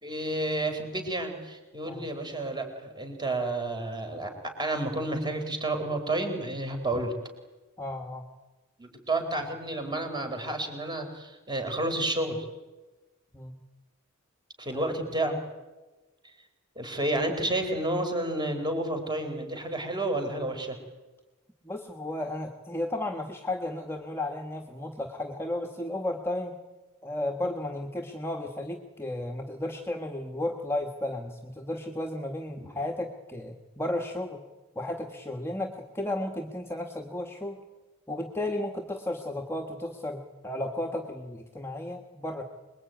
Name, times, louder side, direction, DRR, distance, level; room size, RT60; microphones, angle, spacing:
voice 1, 0.0-7.1 8.8-12.5 14.6-15.4 16.8-20.8 32.6-32.7, right 2 dB, 20° right, 5 dB, 4.4 m, -30 dB
voice 2, 7.8-8.2 13.3-13.6 14.7-14.8 21.6-26.6 27.0-34.4 34.7-37.6 38.1-42.4, left 1 dB, 10° left, 3 dB, 1.5 m, -34 dB
25.5 x 21.5 x 9.3 m, 1.2 s
head